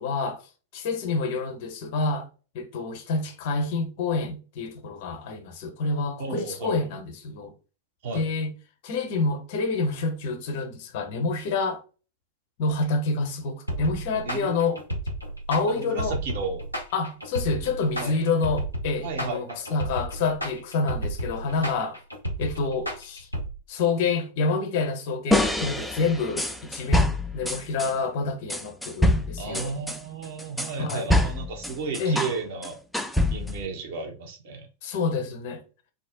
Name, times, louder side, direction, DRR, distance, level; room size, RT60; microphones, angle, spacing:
voice 1, 0.0-2.3 2.5-7.5 8.1-8.5 8.8-11.8 12.6-14.8 15.5-16.2 16.9-22.0 22.4-23.3 23.7-29.7 30.8-31.2 32.0-32.3 34.8-35.6, left 3 dB, 50° left, 0.6 m, -28 dB
voice 2, 6.2-6.9 8.0-8.3 14.2-14.7 15.7-16.6 18.0-18.2 19.0-19.6 29.4-32.8 33.3-34.7, right 4 dB, 55° right, 0.8 m, -33 dB
sound 1, 13.7-23.5, right 1 dB, 90° right, 0.8 m, -32 dB
sound 2, 25.3-27.9 28.5-32.4 32.6-33.7, left 1 dB, 5° left, 0.3 m, -25 dB
2.6 x 2.0 x 3.6 m
figure-of-eight pair, 90°, 0 cm